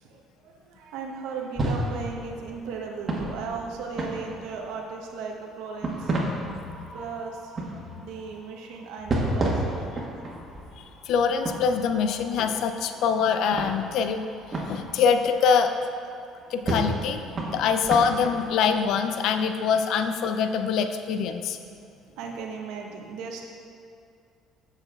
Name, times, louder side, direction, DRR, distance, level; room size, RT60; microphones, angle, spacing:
voice 1, 0.0-6.3 6.5-6.6 6.9-9.8 16.4-16.5 22.1-23.5, right 5 dB, 80° right, 1 dB, 0.7 m, -37 dB
sound 1, 1.5-4.8 5.6-16.0 16.4-19.3, right 1 dB, 35° right, 1.1 m, -33 dB
voice 2, 6.5-6.9 10.8-14.2 14.7-15.7 16.5-21.6, left 6 dB, 70° left, 8 dB, 0.4 m, -24 dB
6.9 x 6.7 x 2.3 m, 2.4 s
supercardioid pair, 80°, 0 cm